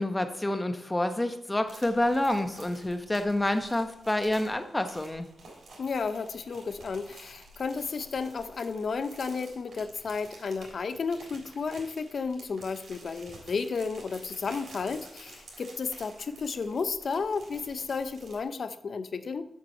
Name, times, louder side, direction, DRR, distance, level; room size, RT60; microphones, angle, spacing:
voice 1, 0.0-5.3, left 1 dB, 15° left, 8 dB, 0.9 m, -28 dB
sound 1, 1.7-18.4, right 2 dB, 75° right, 3.7 m, -51 dB
voice 2, 5.8-19.5, left 5 dB, 60° left, 12 dB, 0.7 m, -33 dB
7.4 x 6.0 x 6.5 m, 0.81 s
cardioid pair, 90°, 0 cm